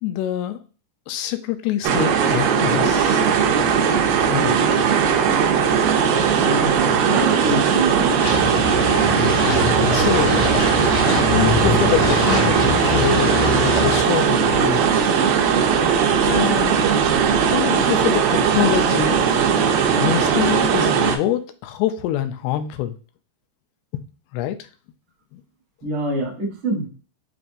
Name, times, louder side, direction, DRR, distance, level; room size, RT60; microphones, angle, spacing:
voice 1, 0.0-0.6 1.1-3.2 4.1-4.6 9.9-10.5 11.3-15.2 16.3-16.8 17.5-19.2 20.0-23.0 23.9-24.0 24.3-24.6 25.3-25.4, left 12 dB, 85° left, 9 dB, 2.5 m, -25 dB
sound 1, 1.8-21.2, right 7 dB, 85° right, 2.1 m, -18 dB
voice 2, 6.4-8.3 25.8-26.9, right 2 dB, 60° right, -5 dB, 1.4 m, -25 dB
sound 2, 8.2-14.0, left 3 dB, 60° left, 1.2 m, -24 dB
6.9 x 2.5 x 2.5 m, 0.36 s
omnidirectional pair, 4.7 m